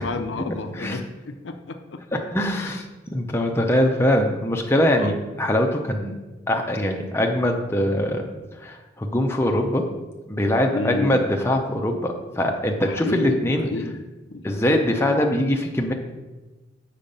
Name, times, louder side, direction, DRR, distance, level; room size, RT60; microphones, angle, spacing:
voice 1, 0.0-2.0 2.6-2.8 5.0-5.1 10.7-11.2 12.8-14.0 14.3-14.4, left 3 dB, 60° left, 7 dB, 0.5 m, -31 dB
voice 2, 2.1-2.8 3.1-6.1 6.5-8.3 8.6-9.9 10.3-13.7 14.4-15.9, left 1 dB, 10° left, 2 dB, 0.6 m, -22 dB
7.0 x 4.9 x 5.3 m, 1.2 s
head